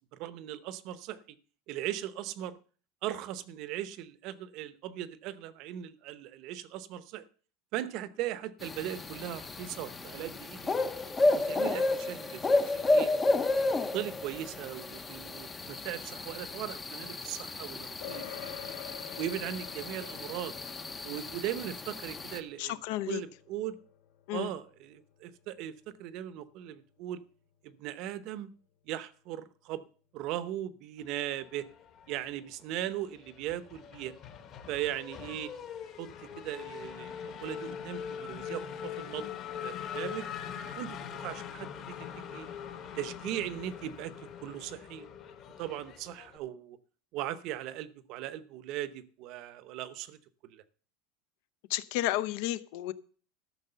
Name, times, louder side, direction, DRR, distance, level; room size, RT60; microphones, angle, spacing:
voice 1, 0.1-1.4 1.7-2.6 3.0-7.2 7.7-10.7 11.3-13.1 13.9-18.7 19.2-20.5 21.0-23.8 24.3-27.2 27.6-28.5 28.9-29.8 30.1-31.7 32.1-34.1 34.7-35.5 36.0-39.3 39.6-40.2 40.7-42.5 42.9-45.1 45.6-46.8 47.1-50.2 50.5-50.6, right 12 dB, 40° right, 15 dB, 0.8 m, -38 dB
sound 1, 8.6-22.4, left 2 dB, 10° left, 0.7 m, -32 dB
sound 2, 18.0-27.7, left 11 dB, 75° left, 3.1 m, -49 dB
voice 2, 22.6-23.2 24.3-24.5 51.7-52.9, left 15 dB, 55° left, 16 dB, 0.7 m, -32 dB
Race car auto racing / Accelerating revving vroom, 31.4-32.4 32.7-46.4, left 8 dB, 30° left, 1.4 m, -42 dB
13.5 x 6.4 x 6.7 m, 0.42 s
supercardioid pair, 175°, 0 cm